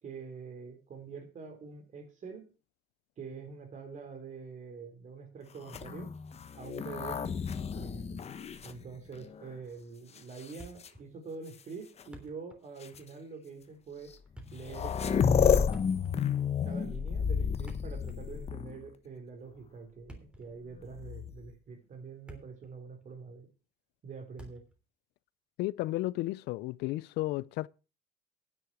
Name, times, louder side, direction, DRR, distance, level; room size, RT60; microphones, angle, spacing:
voice 1, 0.0-2.5 3.2-6.1 6.5-7.3 7.7-8.2 8.6-14.1 14.5-15.8 16.6-23.5 24.0-24.6, right 5 dB, 45° right, 3.8 m, -45 dB
sound 1, 5.6-9.5 10.2-10.9 12.0-12.1 12.8-13.0 14.1-14.2 14.4-18.9 20.8-21.5, left 7 dB, 40° left, 1.1 m, -31 dB
Thump thud, 10.6-11.1 11.4-11.5 11.9-12.7 12.9-13.1 14.1-14.7 15.7-16.3 17.5-18.5 19.9-20.5 21.2-21.4 21.9-22.7 23.0-23.1 24.4-24.8, right 1 dB, 5° right, 3.4 m, -51 dB
voice 2, 25.6-27.7, left 18 dB, 85° left, 0.5 m, -33 dB
10.0 x 8.0 x 6.1 m
cardioid pair, 110°, 17 cm